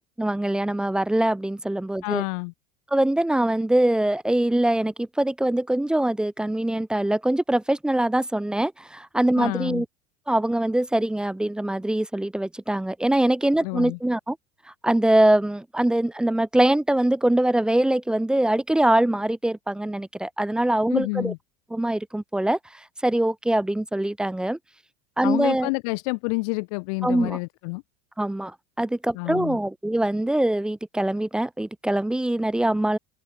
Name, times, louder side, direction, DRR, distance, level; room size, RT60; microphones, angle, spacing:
voice 1, 0.2-2.2 2.9-9.9 10.3-14.4 14.8-21.3 21.7-24.6 25.2-25.7 27.0-27.4 28.2-33.0, right 1 dB, 5° right, 0.7 m, -23 dB
voice 2, 2.0-2.5 9.4-9.8 13.6-14.0 20.9-21.4 25.2-27.8 29.1-29.6, left 31 dB, 75° left, 0.9 m, -28 dB
supercardioid pair, 125°, 19 cm